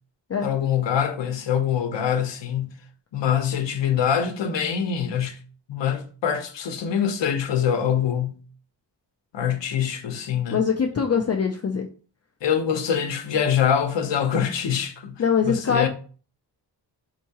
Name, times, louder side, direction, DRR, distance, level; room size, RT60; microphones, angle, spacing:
voice 1, 0.4-2.7 3.1-5.4 5.7-8.4 9.3-10.6 12.4-15.9, left 8 dB, 80° left, 0.7 m, -24 dB
voice 2, 10.5-11.9 14.3-14.5 15.2-15.9, left 6 dB, 40° left, 0.4 m, -23 dB
4.5 x 2.8 x 2.8 m
wide cardioid pair, 150°, 43 cm